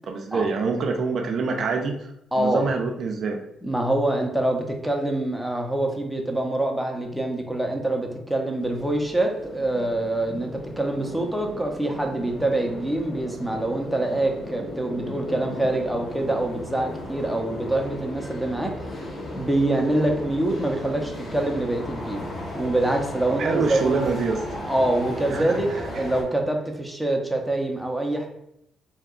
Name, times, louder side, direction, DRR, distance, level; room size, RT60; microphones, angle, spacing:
voice 1, 0.1-2.0 2.4-3.4 23.3-24.5 25.3-26.0, right 4 dB, 60° right, 3 dB, 0.4 m, -26 dB
voice 2, 2.3-2.7 3.6-22.3 22.5-24.0 24.7-28.3, right 1 dB, ahead, 1 dB, 0.6 m, -25 dB
sound 1, 8.6-26.2, left 1 dB, 45° left, 0.9 m, -36 dB
2.8 x 2.3 x 3.6 m, 0.78 s
cardioid pair, 90°, 0 cm